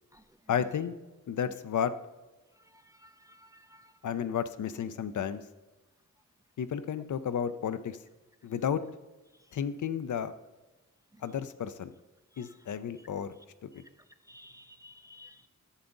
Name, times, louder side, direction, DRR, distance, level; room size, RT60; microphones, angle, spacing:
voice 1, 0.5-0.9 1.3-1.9 4.0-5.4 6.6-8.0 8.4-8.8 9.5-10.3 11.2-11.9 12.4-13.4 13.6-13.7, left 8 dB, 65° left, 12 dB, 0.6 m, -32 dB
voice 2, 2.6-3.9 11.1-11.2 12.3-12.5 13.8-13.9 14.3-15.5, left 1 dB, 10° right, 10 dB, 0.4 m, -55 dB
11.5 x 7.1 x 3.9 m, 1.1 s
wide cardioid pair, 125°, 32 cm